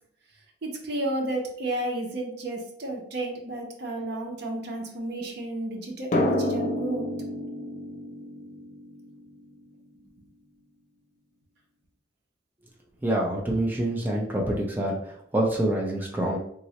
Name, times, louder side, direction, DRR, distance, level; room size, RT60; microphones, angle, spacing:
voice 1, 0.6-7.1, right 1 dB, 65° right, 1 dB, 0.7 m, -32 dB
Drum, 6.1-9.4, left 1 dB, 45° left, 0.5 m, -29 dB
voice 2, 13.0-15.0 15.3-16.4, right 1 dB, 10° right, -2 dB, 0.5 m, -26 dB
3.6 x 2.1 x 2.8 m, 0.68 s
head